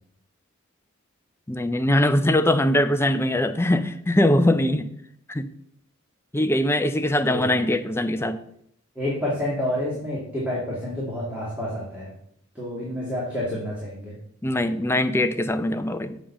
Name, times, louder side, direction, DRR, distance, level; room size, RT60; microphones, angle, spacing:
voice 1, 1.5-4.9 5.3-5.5 6.3-8.4 14.4-16.2, left 1 dB, 10° left, 9 dB, 0.5 m, -22 dB
voice 2, 9.0-12.1 12.6-14.1, left 1 dB, 5° right, -7 dB, 2.2 m, -29 dB
7.4 x 5.1 x 7.1 m, 0.70 s
head